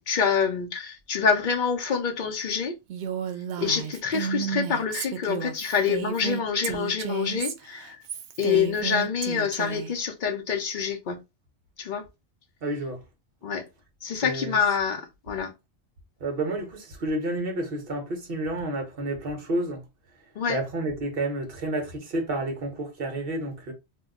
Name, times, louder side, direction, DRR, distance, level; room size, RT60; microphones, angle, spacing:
voice 1, 0.0-2.8 3.6-8.0 8.4-11.2 11.8-12.0 13.4-13.6 14.0-15.5 20.4-20.6, left 6 dB, 55° left, 0.7 m, -26 dB
Female speech woman speaking, 2.9-9.9, right 8 dB, 85° right, 0.9 m, -32 dB
voice 2, 12.6-13.0 14.2-14.6 16.2-19.8 20.5-23.7, right 1 dB, 60° right, 1.1 m, -30 dB
2.8 x 2.2 x 3.6 m
omnidirectional pair, 1.1 m